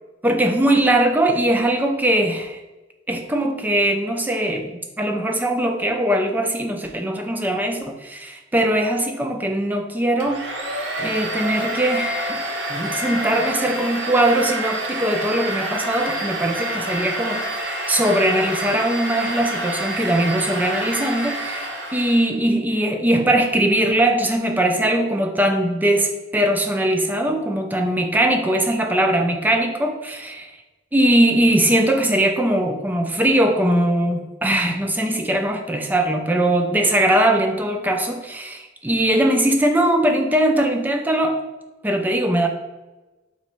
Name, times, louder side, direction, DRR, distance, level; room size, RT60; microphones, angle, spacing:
voice 1, 0.2-2.6 3.1-10.4 11.0-12.4 12.7-30.5 30.9-41.4 41.8-42.5, right 1 dB, 10° right, 4 dB, 0.4 m, -20 dB
Domestic sounds home sounds, 10.2-22.3, right 1 dB, 65° right, 0.7 m, -27 dB
3.4 x 3.0 x 4.3 m, 1.1 s
head